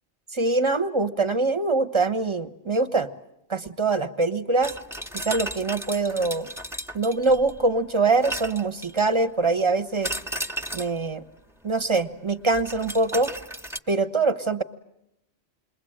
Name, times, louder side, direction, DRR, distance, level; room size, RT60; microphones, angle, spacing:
voice 1, 0.3-3.1 3.5-4.7 5.1-6.5 6.9-10.1 10.7-11.2 11.6-13.3 13.9-14.6, right 3 dB, 25° right, 10 dB, 1.1 m, -23 dB
sound 1, 4.6-7.6 8.2-9.2 10.0-11.0 12.5-13.8, right 1 dB, 5° right, 1.1 m, -34 dB
28.5 x 21.5 x 8.8 m, 0.86 s
omnidirectional pair, 1.1 m